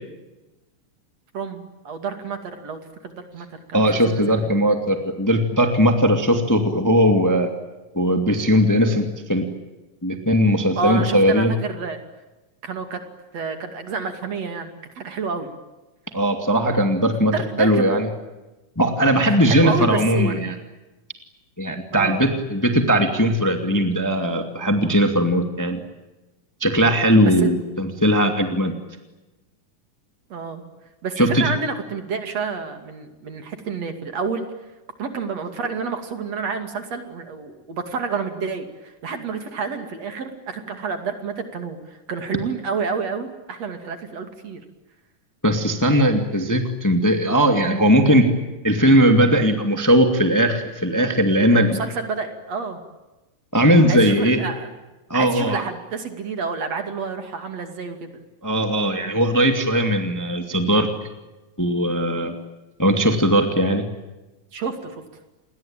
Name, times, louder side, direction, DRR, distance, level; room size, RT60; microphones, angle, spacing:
voice 1, 1.3-4.7 10.8-12.0 12.6-13.0 13.3-14.7 15.0-15.5 17.3-18.0 19.2-20.5 21.9-22.3 27.2-27.5 30.3-30.6 31.0-34.4 35.0-44.6 51.5-52.8 53.9-54.7 55.1-58.1 64.5-65.0, right 4 dB, 55° right, 7 dB, 3.5 m, -29 dB
voice 2, 3.7-7.5 7.9-9.5 10.0-11.5 16.1-17.3 17.6-18.1 18.8-20.5 21.6-25.8 26.6-28.7 31.2-31.5 45.4-48.3 48.6-51.8 53.5-54.4 55.1-55.6 58.4-60.9 61.6-62.3 62.8-63.9, equal, 5° left, 5 dB, 2.1 m, -19 dB
29.5 x 21.5 x 9.1 m, 1.1 s
omnidirectional pair, 3.7 m